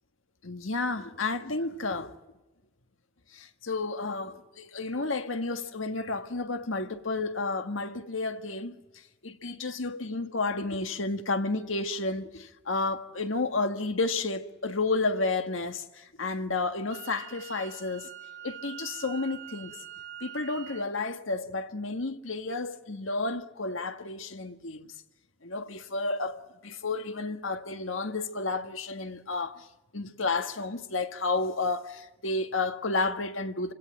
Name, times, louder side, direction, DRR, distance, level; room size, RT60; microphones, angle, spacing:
voice 1, 0.4-2.2 3.3-8.7 9.2-18.1 18.4-19.7 20.2-24.9 25.4-29.7 29.9-33.7, left 3 dB, 85° left, 1.6 m, -31 dB
Wind instrument woodwind instrument, 16.9-20.9, right 11 dB, 65° right, 1.7 m, -45 dB
28.5 x 17.0 x 9.0 m
head